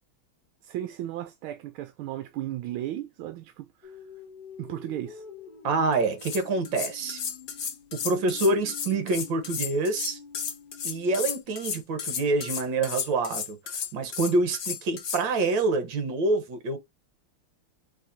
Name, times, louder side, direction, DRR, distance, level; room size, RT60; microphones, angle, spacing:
voice 1, 0.6-4.0 4.6-5.2, right 13 dB, 80° right, 1.4 m, -35 dB
sound 1, 3.8-11.4, left 5 dB, 90° left, 0.4 m, -47 dB
voice 2, 5.6-7.2 7.9-10.2 10.8-13.6 13.9-16.8, right 3 dB, 65° right, 1.9 m, -26 dB
sound 2, 5.9-15.2, left 7 dB, 65° left, 1.7 m, -33 dB
5.2 x 3.7 x 2.7 m
omnidirectional pair, 2.3 m